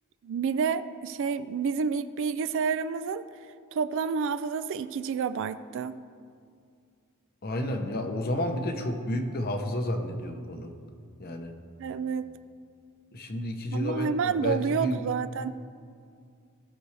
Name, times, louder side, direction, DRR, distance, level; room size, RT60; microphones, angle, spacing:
voice 1, 0.2-3.2 3.7-6.0 11.8-12.3 13.7-15.6, right 5 dB, 60° right, 13 dB, 0.3 m, -29 dB
voice 2, 7.4-10.7 11.2-11.5 13.1-15.1, left 1 dB, 45° left, 5 dB, 0.9 m, -31 dB
18.0 x 6.1 x 3.3 m, 2.3 s
head